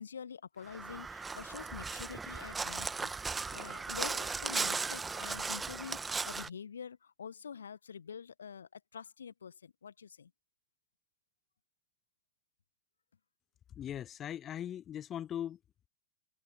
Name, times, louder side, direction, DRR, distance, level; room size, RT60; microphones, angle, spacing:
voice 1, 0.0-3.1 3.5-10.3, left 7 dB, 70° left, 1.7 m, -46 dB
Crow, 0.7-6.5, right 4 dB, 15° right, 1.6 m, -37 dB
voice 2, 13.7-15.6, left 10 dB, 25° left, 1.0 m, -40 dB
figure-of-eight pair, 90°, 0 cm